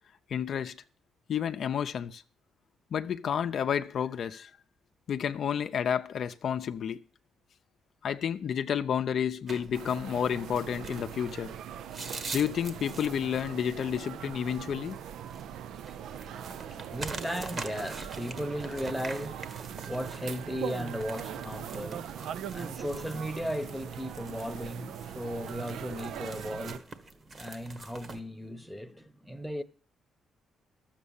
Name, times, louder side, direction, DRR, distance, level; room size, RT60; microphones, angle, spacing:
voice 1, 0.3-0.8 1.3-2.2 2.9-4.5 5.1-7.0 8.0-11.5 12.3-15.0, left 8 dB, 60° left, 0.6 m, -30 dB
sound 1, 9.5-28.2, right 3 dB, 40° right, 1.4 m, -45 dB
sound 2, 9.7-26.8, right 9 dB, 75° right, 0.5 m, -41 dB
voice 2, 16.2-29.6, equal, ahead, 1.0 m, -37 dB
12.5 x 7.4 x 7.0 m
cardioid pair, 90°, 0 cm